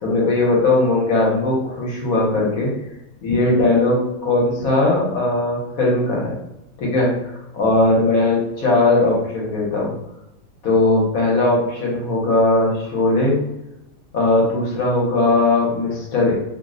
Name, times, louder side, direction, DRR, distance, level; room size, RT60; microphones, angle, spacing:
voice 1, 0.0-2.7 3.2-6.3 6.8-7.1 7.5-9.9 10.6-13.4 14.1-16.4, left 2 dB, 70° left, -4 dB, 1.3 m, -18 dB
2.8 x 2.1 x 3.6 m, 0.90 s
omnidirectional pair, 1.6 m